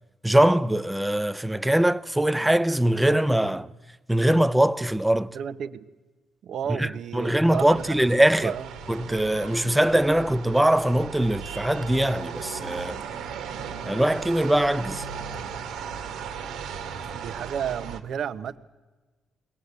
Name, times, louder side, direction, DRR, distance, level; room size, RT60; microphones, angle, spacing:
voice 1, 0.2-3.7 4.1-5.4 6.7-8.5 8.9-13.0 13.8-15.1, right 1 dB, 5° right, 0.7 m, -22 dB
voice 2, 5.3-5.8 6.4-8.1 8.4-8.7 17.1-18.6, right 8 dB, 65° right, 1.0 m, -32 dB
sound 1, 7.4-18.0, right 6 dB, 90° right, 1.8 m, -37 dB
22.0 x 18.0 x 8.2 m
cardioid pair, 90°, 0 cm